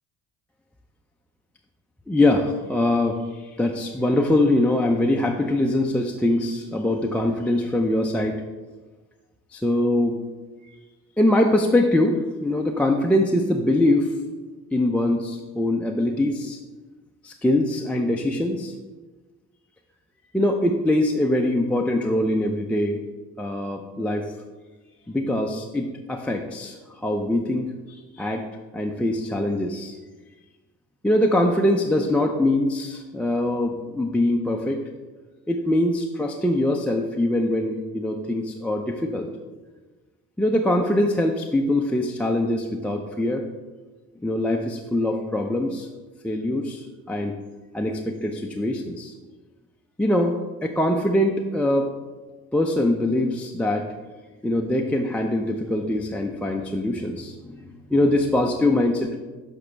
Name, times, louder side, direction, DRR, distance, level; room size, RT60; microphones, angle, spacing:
voice 1, 2.1-8.4 9.5-10.2 11.2-14.1 14.7-16.6 17.2-18.7 20.3-23.0 23.4-24.3 25.1-28.4 28.7-29.9 31.0-34.8 35.5-39.3 40.4-43.4 44.2-45.9 46.2-47.4 47.7-49.1 50.0-51.9 52.5-53.9 54.4-59.2, left 1 dB, 5° left, 0 dB, 0.4 m, -23 dB
6.8 x 5.0 x 3.3 m, 1.3 s
supercardioid pair, 70°, 35 cm